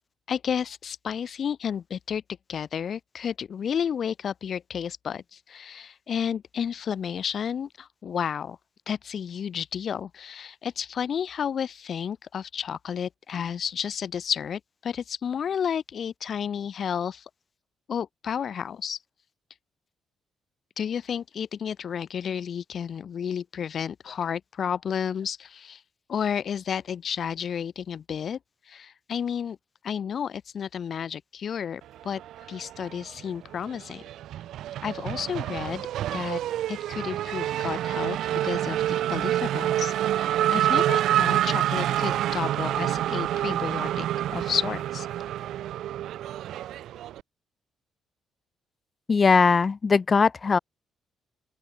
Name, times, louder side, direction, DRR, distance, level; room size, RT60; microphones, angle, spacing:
voice 1, 0.3-2.2 2.5-8.6 8.9-17.2 17.9-19.0 20.8-25.8 26.1-28.4 28.7-29.6 29.8-32.2 32.5-34.0 34.8-36.4 36.7-44.0 44.3-45.1, left 8 dB, 55° left, 2.5 m, -31 dB
Race car auto racing / Accelerating revving vroom, 32.2-33.2 33.5-47.2, right 12 dB, 80° right, 0.5 m, -27 dB
voice 2, 49.1-50.6, left 5 dB, 35° left, 0.7 m, -20 dB
open air
cardioid pair, 90°, 0 cm